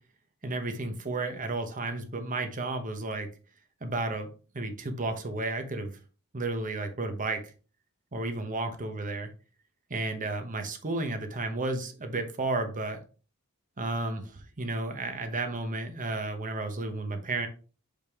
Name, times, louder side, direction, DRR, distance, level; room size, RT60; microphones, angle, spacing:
voice 1, 0.4-3.3 3.8-4.3 4.5-5.9 6.3-7.4 8.1-9.3 9.9-13.0 13.8-17.5, right 2 dB, 35° right, 1.0 m, -32 dB
5.1 x 5.1 x 3.6 m
head